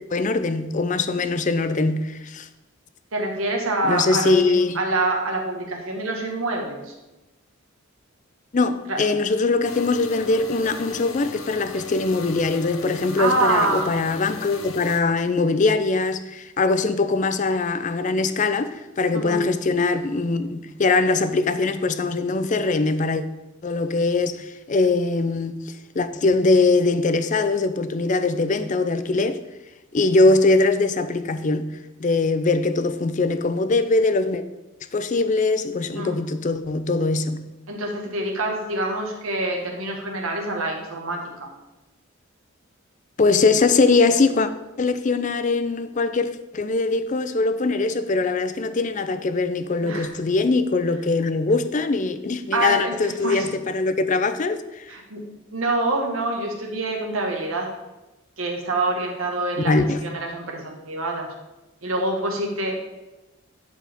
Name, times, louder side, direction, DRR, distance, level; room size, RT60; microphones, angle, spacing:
voice 1, 0.1-2.5 3.8-4.8 8.5-23.2 23.6-29.4 29.9-34.4 34.9-37.5 43.2-44.5 44.8-53.5 53.7-54.9 59.6-60.0, left 3 dB, 35° left, 0.4 m, -22 dB
voice 2, 3.1-6.9 8.9-9.0 13.2-13.9 19.1-19.4 35.9-36.2 37.7-41.5 49.8-50.1 52.5-53.5 54.9-57.7 58.4-61.3 61.8-62.8, right 2 dB, 80° right, 1.6 m, -26 dB
sound 1, 9.6-15.0, left 4 dB, 70° left, 0.8 m, -37 dB
11.0 x 4.7 x 3.5 m
head